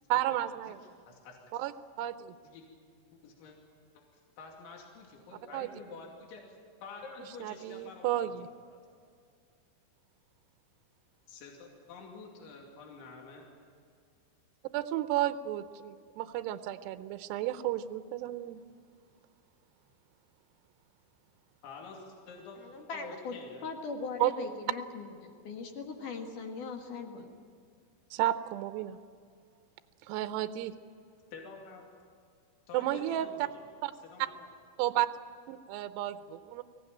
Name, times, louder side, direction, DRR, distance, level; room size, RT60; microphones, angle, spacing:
voice 1, 0.1-0.8 1.5-1.7 2.0-2.3 5.5-5.7 7.4-8.5 14.7-18.6 24.2-24.3 28.1-29.0 30.1-30.7 32.7-33.3 33.8-33.9 34.8-35.1 35.5-36.6, right 13 dB, 80° right, 11 dB, 2.5 m, -32 dB
voice 2, 1.1-1.4 2.4-2.7 3.0-3.6 3.9-4.0 4.4-8.3 8.7-8.8 11.3-13.5 21.6-22.6 22.9-23.7 31.3-31.8 32.7-33.7 33.9-34.5, left 4 dB, 75° left, -1 dB, 4.9 m, -49 dB
voice 3, 22.6-27.4, left 4 dB, 55° left, 3 dB, 2.5 m, -40 dB
24.0 x 17.0 x 9.0 m, 2.2 s
omnidirectional pair, 5.5 m